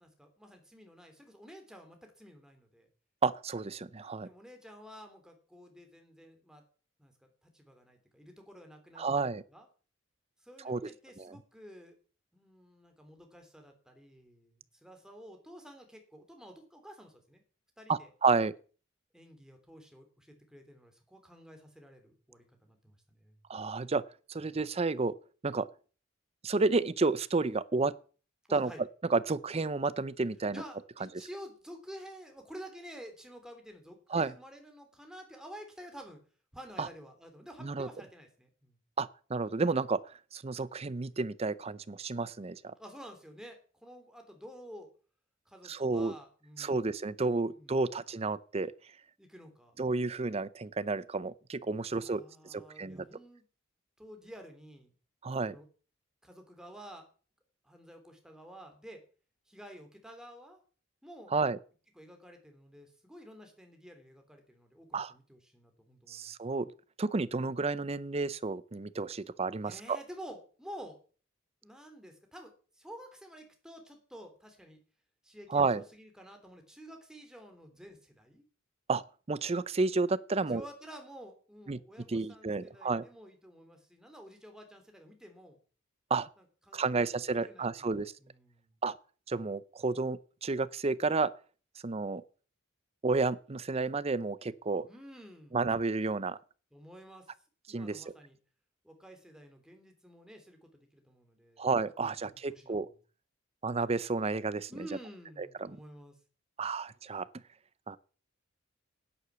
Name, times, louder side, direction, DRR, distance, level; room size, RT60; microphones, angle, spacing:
voice 1, 0.0-2.9 4.2-6.6 7.0-7.1 7.4-9.7 10.4-12.0 12.3-17.4 17.8-18.1 19.1-23.4 28.5-28.8 30.5-36.2 36.5-38.8 42.8-44.9 45.5-46.9 47.5-47.8 49.2-49.8 51.9-53.4 54.0-54.9 55.5-55.7 56.2-57.1 57.6-59.0 59.5-60.6 61.0-61.3 61.9-66.3 69.6-71.0 71.6-74.8 75.2-78.5 80.4-85.6 86.4-88.7 94.9-95.6 96.7-97.3 97.7-98.4 98.8-101.7 102.0-103.0 104.7-106.2, equal, 5° right, 3.0 m, -51 dB
voice 2, 3.2-4.3 9.0-9.4 10.6-10.8 11.2-11.4 17.9-18.5 23.5-24.0 24.3-25.1 25.4-25.7 26.4-27.9 28.5-28.7 29.1-30.6 34.1-34.3 36.8-36.9 37.6-37.9 39.0-40.0 40.3-42.7 45.7-46.1 46.6-48.7 49.8-52.2 52.5-53.1 55.2-55.6 61.3-61.6 64.9-65.1 66.1-66.7 67.0-70.0 75.5-75.8 78.9-79.0 79.3-80.6 81.7-81.8 82.1-83.0 86.1-86.3 86.7-88.1 88.8-89.0 89.3-91.3 91.8-92.2 93.0-94.9 95.5-96.4 97.7-98.0 101.6-102.9 103.6-104.7 105.6-105.8 106.6-107.3 107.9-108.0, right 3 dB, 30° right, 0.6 m, -31 dB
11.5 x 9.8 x 6.9 m
head